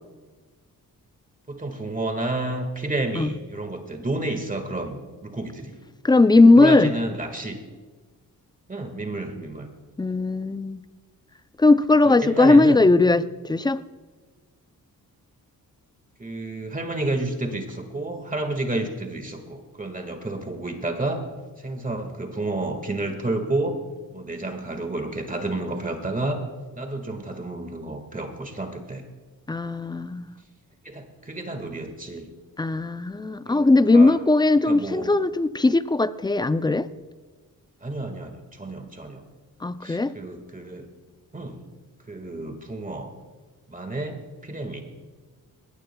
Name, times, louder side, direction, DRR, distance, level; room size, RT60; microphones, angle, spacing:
voice 1, 1.5-5.8 6.3-7.6 8.7-9.7 12.2-12.8 16.2-21.2 21.6-23.8 24.1-26.4 26.7-29.0 30.8-32.3 33.4-34.2 34.7-35.1 37.8-39.2 39.8-40.9 41.3-41.6 42.1-43.1 43.7-44.8, right 2 dB, 20° right, 5 dB, 1.7 m, -30 dB
voice 2, 6.0-6.9 10.0-10.8 11.6-13.8 29.5-30.2 32.6-36.9 39.6-40.1, left 2 dB, 10° left, 13 dB, 0.4 m, -18 dB
20.0 x 17.5 x 2.3 m, 1.3 s
cardioid pair, 105°, 36 cm